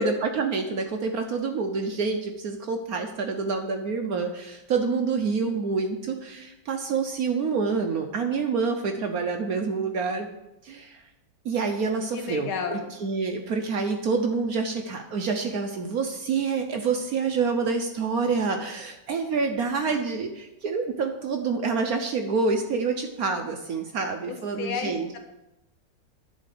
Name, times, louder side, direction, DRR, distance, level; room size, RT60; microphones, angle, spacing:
voice 1, 0.0-10.3 10.6-11.0 11.4-25.1, right 4 dB, 65° right, 4 dB, 0.9 m, -27 dB
voice 2, 12.1-12.8 24.3-25.2, left 5 dB, 80° left, 5 dB, 2.0 m, -32 dB
10.5 x 4.3 x 6.7 m, 0.94 s
omnidirectional pair, 2.2 m